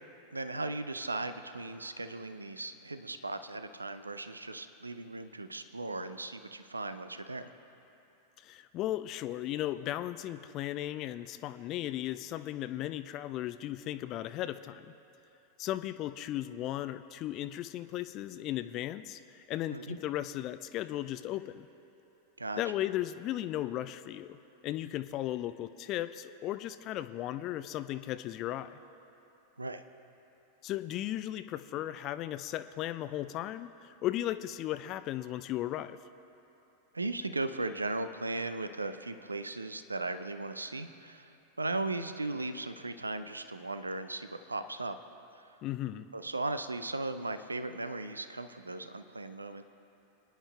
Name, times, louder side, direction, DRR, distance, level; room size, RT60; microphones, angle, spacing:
voice 1, 0.3-7.5 19.7-20.0 22.4-22.6 29.6-29.8 36.9-41.3 41.6-45.0 46.1-49.6, right 2 dB, 80° right, 10 dB, 0.4 m, -37 dB
voice 2, 8.4-14.9 15.6-21.7 22.6-24.4 24.6-28.8 30.6-36.0 45.6-46.1, left 13 dB, 35° left, 12 dB, 0.3 m, -36 dB
28.5 x 10.0 x 2.3 m, 2.9 s
figure-of-eight pair, 90°, 0 cm